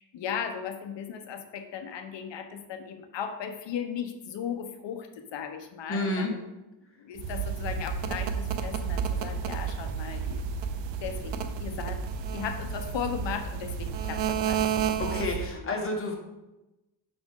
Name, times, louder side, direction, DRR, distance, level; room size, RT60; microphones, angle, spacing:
voice 1, 0.0-6.3 7.0-10.4 11.0-12.0 12.3-15.1 15.5-15.8, left 7 dB, 80° left, 7 dB, 0.9 m, -37 dB
voice 2, 5.9-6.3 15.0-16.2, left 2 dB, 30° left, 0 dB, 1.4 m, -30 dB
sound 1, 7.2-15.6, right 7 dB, 90° right, 0.7 m, -31 dB
6.2 x 5.2 x 3.7 m, 0.98 s
cardioid pair, 120°, 43 cm